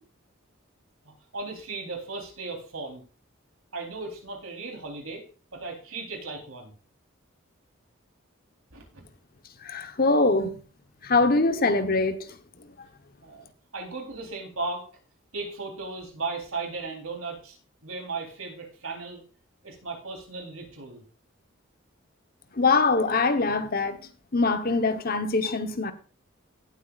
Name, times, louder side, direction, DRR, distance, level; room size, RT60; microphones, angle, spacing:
voice 1, 1.0-3.0 3.7-5.3 5.5-6.7 8.7-9.0 13.2-14.8 15.3-17.6 17.8-19.2 19.6-21.0, right 3 dB, 85° right, 4.0 m, -36 dB
voice 2, 9.6-10.5 11.0-12.4 22.5-25.9, left 3 dB, 45° left, 1.1 m, -23 dB
18.0 x 8.2 x 2.5 m
head